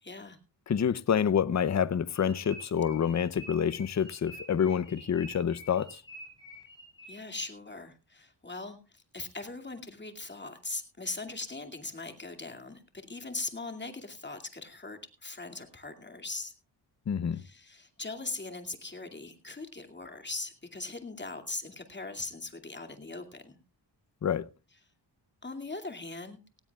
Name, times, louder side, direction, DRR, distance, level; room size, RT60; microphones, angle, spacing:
voice 1, 0.0-0.4 7.0-12.8 13.1-16.5 17.3-23.6 25.4-26.4, left 3 dB, 25° left, 2.4 m, -40 dB
voice 2, 0.7-5.9 17.1-17.4 24.2-24.5, left 8 dB, 40° left, 0.7 m, -27 dB
sound 1, 2.1-7.4, equal, 10° left, 7.7 m, -48 dB
18.0 x 16.0 x 2.4 m
cardioid pair, 70°, 43 cm